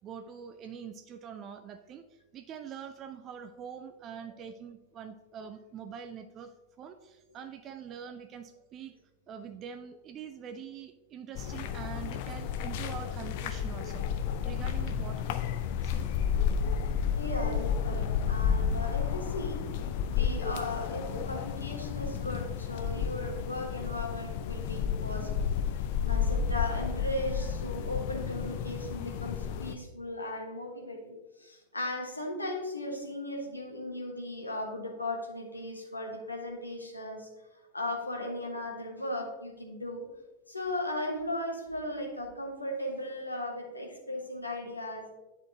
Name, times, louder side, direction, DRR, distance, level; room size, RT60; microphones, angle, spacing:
voice 1, 0.0-8.9 9.3-15.4 15.8-16.1, right 7 dB, 30° right, 8 dB, 0.4 m, -44 dB
sound 1, 11.3-29.7, left 7 dB, 50° left, 0.5 m, -31 dB
voice 2, 17.1-19.7 20.1-25.6 26.0-40.1 40.5-45.1, left 1 dB, 85° left, 1 dB, 1.3 m, -37 dB
10.0 x 4.3 x 2.8 m, 1.1 s
figure-of-eight pair, 90°, 0 cm